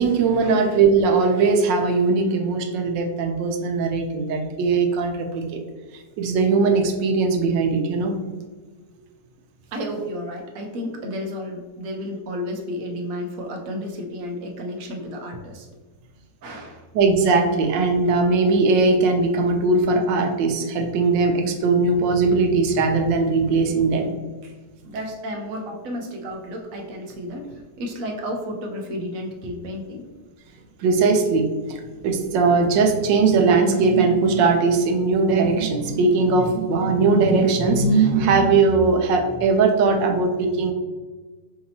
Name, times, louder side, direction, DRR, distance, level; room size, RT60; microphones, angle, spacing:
voice 1, 0.0-5.6 6.2-8.1 16.9-24.1 30.8-31.4 32.0-40.7, right 4 dB, 85° right, 3 dB, 1.3 m, -19 dB
voice 2, 9.7-15.7 16.4-16.8 24.4-24.5 24.8-30.1, equal, 65° right, 2 dB, 0.9 m, -32 dB
5.0 x 2.8 x 2.7 m, 1.3 s
omnidirectional pair, 1.9 m